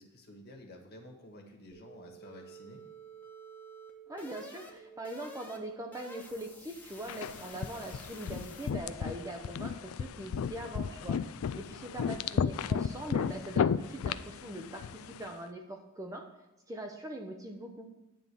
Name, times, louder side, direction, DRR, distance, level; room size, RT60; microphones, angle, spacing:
voice 1, 0.0-2.8 11.5-12.0, left 1 dB, 50° left, 2 dB, 1.5 m, -52 dB
sound 1, 1.7-8.8, right 2 dB, 10° left, 1.0 m, -51 dB
voice 2, 4.1-16.3 16.7-17.9, right 1 dB, 15° right, 3 dB, 0.6 m, -42 dB
sound 2, 7.1-15.3, left 7 dB, 70° left, 0.3 m, -34 dB
9.2 x 3.8 x 6.8 m, 1.0 s
head